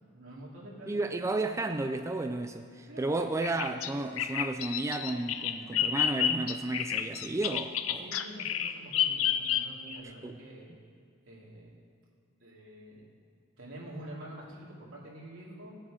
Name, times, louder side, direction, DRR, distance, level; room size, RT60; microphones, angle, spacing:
voice 1, 0.1-1.2 2.9-3.3 8.0-10.8 11.2-11.7 12.4-13.0 13.6-15.7, right 1 dB, 80° right, -4 dB, 2.8 m, -47 dB
voice 2, 0.9-8.1 10.0-10.4, right 2 dB, 15° right, 6 dB, 0.3 m, -33 dB
Bird vocalization bird call bird song, 3.4-10.0, left 9 dB, 90° left, 0.5 m, -30 dB
16.0 x 7.4 x 5.0 m, 2.2 s
head